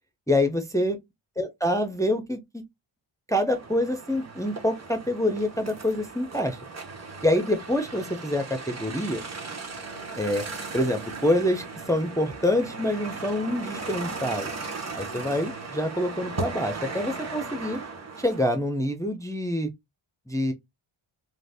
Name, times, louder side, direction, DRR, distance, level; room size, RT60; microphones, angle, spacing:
voice 1, 0.3-1.0 1.4-2.6 3.3-6.6 7.2-9.2 10.2-10.5 10.7-14.5 14.9-17.8 18.2-19.7 20.3-20.5, left 1 dB, 5° left, 0.4 m, -26 dB
sound 1, 3.5-18.4, right 4 dB, 30° right, 0.7 m, -37 dB
2.5 x 2.0 x 3.3 m
cardioid pair, 70°, 50 cm